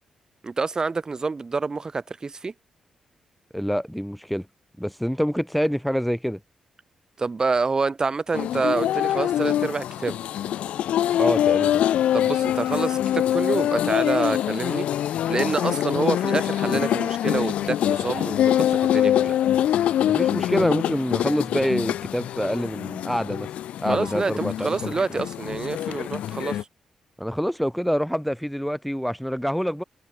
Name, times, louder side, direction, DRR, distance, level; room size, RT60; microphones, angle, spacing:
voice 1, 0.4-2.5 7.2-10.2 12.1-14.9 15.3-19.4 23.9-26.7, right 4 dB, 35° right, 3.1 m, -27 dB
voice 2, 3.5-4.5 4.8-6.4 11.2-11.8 20.0-23.5 23.8-24.9 27.2-29.8, equal, ahead, 2.6 m, -26 dB
sound 1, 8.3-26.6, left 11 dB, 85° left, 0.5 m, -24 dB
cardioid pair, 75°, 2 cm